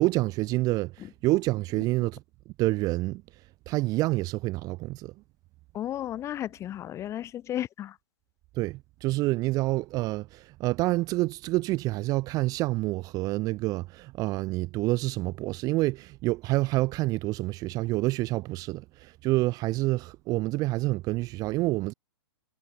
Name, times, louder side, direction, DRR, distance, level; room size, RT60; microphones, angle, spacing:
voice 1, 0.0-3.2 3.7-5.1 8.6-21.9, right 19 dB, 25° right, 0.7 m, -28 dB
voice 2, 5.7-8.0, left 12 dB, 20° left, 1.0 m, -33 dB
figure-of-eight pair, 115°, 14 cm